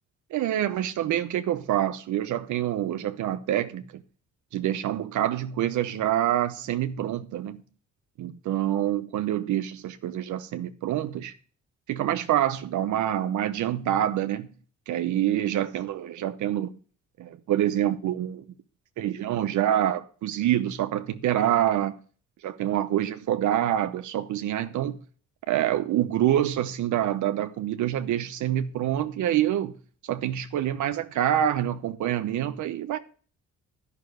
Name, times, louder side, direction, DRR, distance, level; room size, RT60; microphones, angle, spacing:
voice 1, 0.3-4.0 4.5-7.6 8.2-11.3 11.9-14.5 14.9-16.7 17.2-18.4 19.0-21.9 22.4-25.0 25.5-29.8 30.1-33.0, right 11 dB, 75° right, 0.8 m, -26 dB
11.5 x 5.9 x 6.5 m
cardioid pair, 90°, 30 cm